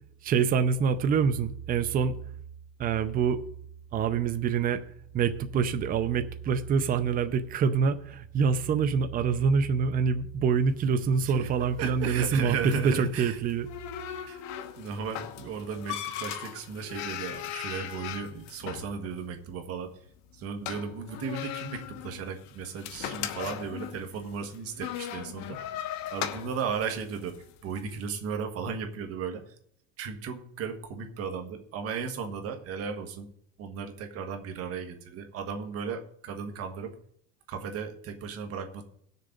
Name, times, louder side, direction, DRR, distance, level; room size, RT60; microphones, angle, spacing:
voice 1, 0.2-2.2 2.8-3.4 3.9-4.8 5.1-13.7, right 6 dB, 25° right, 10 dB, 0.6 m, -26 dB
sound 1, 10.7-27.9, left 11 dB, 55° left, 1.0 m, -39 dB
voice 2, 11.2-13.4 14.3-14.4 14.8-20.0 20.3-25.6 26.1-29.5 30.0-33.3 33.6-36.9 37.5-38.8, right 6 dB, 45° right, 6 dB, 1.6 m, -35 dB
18.5 x 6.7 x 3.9 m, 0.68 s
cardioid pair, 150°, 33 cm